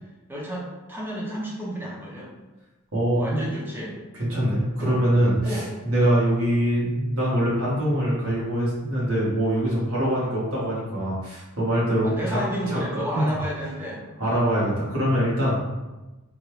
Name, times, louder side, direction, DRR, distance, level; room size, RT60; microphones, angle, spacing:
voice 1, 0.3-2.3 3.1-4.0 4.8-5.0 5.4-5.7 12.0-14.4, equal, 10° right, -4 dB, 0.7 m, -32 dB
voice 2, 2.9-3.5 4.1-12.4 12.7-12.8 13.1-13.4 14.2-15.7, equal, 65° right, -7 dB, 1.4 m, -23 dB
3.8 x 2.2 x 3.1 m, 1.1 s
head